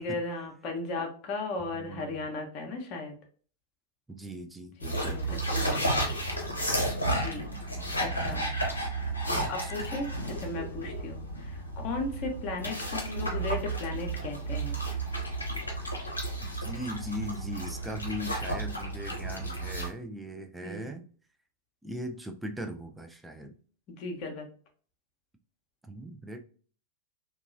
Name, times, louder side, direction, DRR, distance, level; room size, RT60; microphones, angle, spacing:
voice 1, 0.0-3.1 4.8-6.1 7.1-7.5 8.0-8.5 9.5-14.8 20.6-20.9 24.0-24.5, left 3 dB, 40° left, 2 dB, 0.8 m, -36 dB
voice 2, 1.7-2.3 4.1-4.8 5.0-5.4 7.8-8.4 9.3-9.7 16.4-21.0 21.8-23.6 25.8-26.4, equal, 5° right, 5 dB, 0.4 m, -40 dB
sound 1, 4.8-19.9, right 1 dB, 80° left, 0.6 m, -32 dB
2.8 x 2.3 x 2.5 m, 0.42 s
figure-of-eight pair, 90°, 0 cm